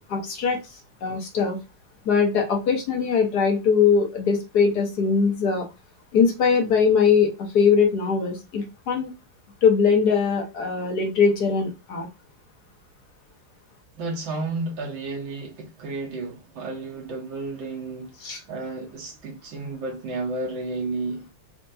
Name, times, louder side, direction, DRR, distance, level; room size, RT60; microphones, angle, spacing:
voice 1, 0.1-0.6 1.0-1.6 2.0-5.7 6.1-9.1 9.6-12.1 18.2-18.4, left 6 dB, 55° left, 1.3 m, -21 dB
voice 2, 14.0-21.3, right 3 dB, 65° right, 1.8 m, -32 dB
4.5 x 2.8 x 2.6 m
omnidirectional pair, 2.3 m